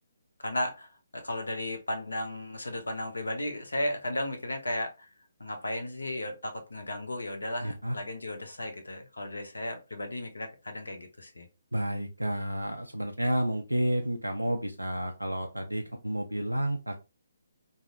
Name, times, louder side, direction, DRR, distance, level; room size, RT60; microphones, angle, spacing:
voice 1, 0.4-5.1 5.4-11.5, left 1 dB, 70° left, 0.7 m, -35 dB
voice 2, 7.6-8.0 11.7-17.0, right 1 dB, 90° right, 0.3 m, -30 dB
2.6 x 2.0 x 2.5 m
figure-of-eight pair, 140°, 0 cm